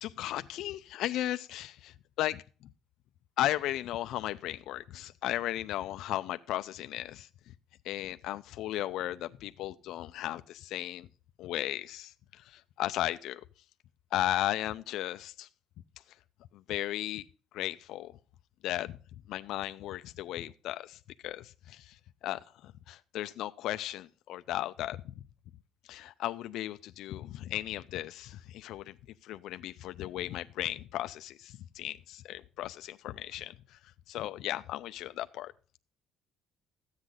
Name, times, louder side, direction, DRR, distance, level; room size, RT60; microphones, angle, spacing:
voice 1, 0.0-2.4 3.4-7.3 7.8-11.1 11.4-12.1 12.5-13.4 14.1-15.5 16.7-17.2 17.5-18.1 18.6-18.9 19.3-21.0 21.2-21.9 22.2-25.0 25.9-28.9 29.2-33.5 34.1-35.5, left 14 dB, 70° left, 0.5 m, -35 dB
14.0 x 8.1 x 3.8 m
cardioid pair, 140°, 0 cm